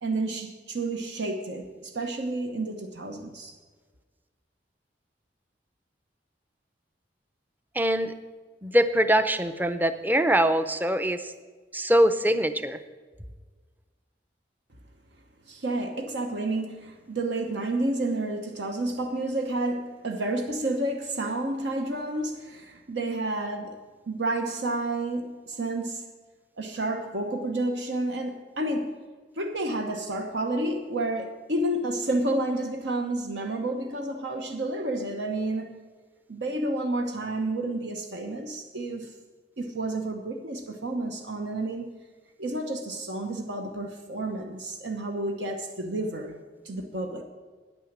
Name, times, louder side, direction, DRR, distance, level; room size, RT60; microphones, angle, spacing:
voice 1, 0.0-3.6 15.5-23.8 24.1-26.0 26.6-29.0 29.4-35.8 36.3-39.1 39.6-41.9 42.4-47.3, right 2 dB, 80° right, 1.0 m, -30 dB
voice 2, 7.7-8.1 8.6-11.3 11.7-12.8, right 1 dB, 10° right, 0.5 m, -23 dB
9.8 x 9.2 x 7.3 m
head